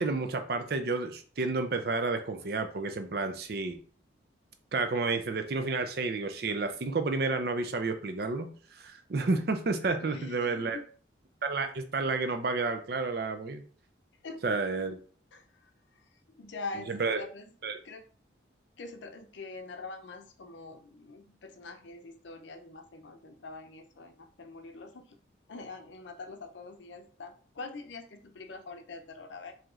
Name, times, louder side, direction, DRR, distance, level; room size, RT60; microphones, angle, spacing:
voice 1, 0.0-3.8 4.7-10.8 11.4-13.6 14.4-15.0 16.9-17.2 17.6-17.8, right 3 dB, 55° right, 8 dB, 0.5 m, -31 dB
voice 2, 10.0-10.8 14.2-14.6 15.3-17.5 17.8-18.0 18.8-25.2 25.5-29.5, left 3 dB, 75° left, 5 dB, 0.5 m, -44 dB
4.8 x 2.8 x 2.4 m, 0.43 s
head